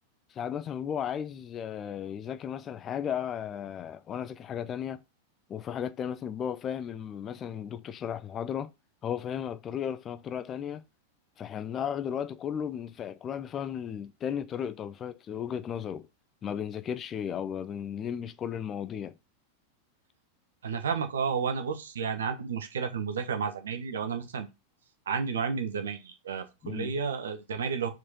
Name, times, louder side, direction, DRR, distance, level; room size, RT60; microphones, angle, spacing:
voice 1, 0.3-5.0 5.5-8.7 9.0-10.8 11.4-16.1 16.4-19.2 26.6-27.0, left 8 dB, 25° left, 0.5 m, -35 dB
voice 2, 20.6-24.5 25.1-27.9, right 6 dB, 65° right, 1.3 m, -31 dB
4.9 x 4.6 x 5.7 m
figure-of-eight pair, 90°, 0 cm